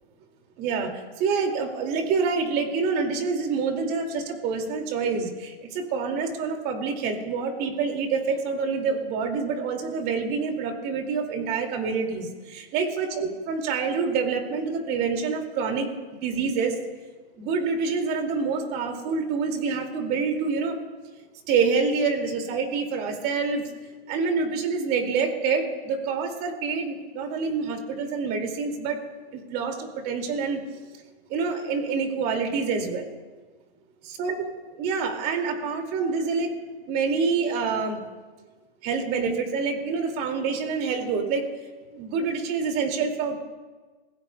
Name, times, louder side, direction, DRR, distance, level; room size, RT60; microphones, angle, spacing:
voice 1, 0.6-0.9 1.2-16.8 17.4-20.8 21.5-23.6 24.1-29.0 29.3-30.6 31.3-33.1 34.0-34.3 34.8-36.5 36.9-38.0 38.8-41.5 41.9-43.4, right 5 dB, 30° right, 4 dB, 2.2 m, -27 dB
27.5 x 16.0 x 2.2 m, 1.3 s
hypercardioid pair, 145°, 31 cm